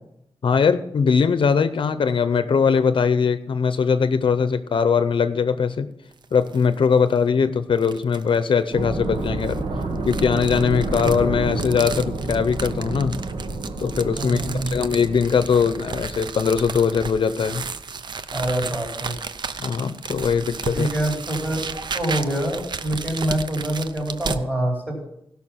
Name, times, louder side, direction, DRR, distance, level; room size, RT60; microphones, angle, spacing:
voice 1, 0.4-5.9 6.3-9.6 10.1-13.1 13.8-17.6 19.6-20.9, left 6 dB, 60° left, 11 dB, 0.6 m, -21 dB
sound 1, 6.1-6.7 7.1-7.2 7.8-8.4 9.2-24.4, right 5 dB, 50° right, 0.5 m, -34 dB
sound 2, 8.7-16.9, right 2 dB, 80° right, 1.5 m, -29 dB
voice 2, 14.2-14.7 18.3-19.1 20.7-25.0, right 1 dB, 20° right, -1 dB, 4.1 m, -25 dB
17.0 x 5.8 x 5.8 m, 0.78 s
wide cardioid pair, 170°, 10 cm